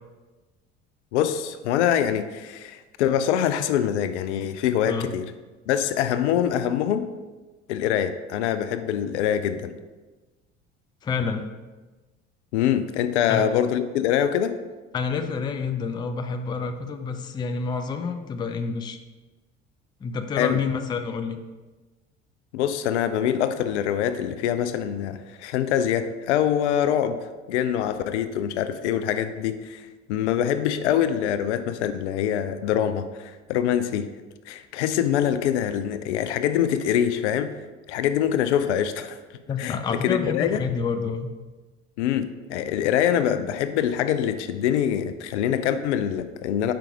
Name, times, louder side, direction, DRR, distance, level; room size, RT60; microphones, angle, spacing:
voice 1, 1.1-5.2 5.7-7.1 7.7-9.7 12.5-14.5 20.4-20.6 22.5-27.2 27.5-34.1 34.5-37.5 37.9-39.2 39.6-40.6 42.0-46.7, left 9 dB, 70° left, 11 dB, 0.5 m, -24 dB
voice 2, 11.0-11.4 13.3-13.4 14.9-19.0 20.0-21.4 39.5-41.3, left 5 dB, 15° left, 7 dB, 0.4 m, -28 dB
5.1 x 4.5 x 4.7 m, 1.2 s
figure-of-eight pair, 60°, 37 cm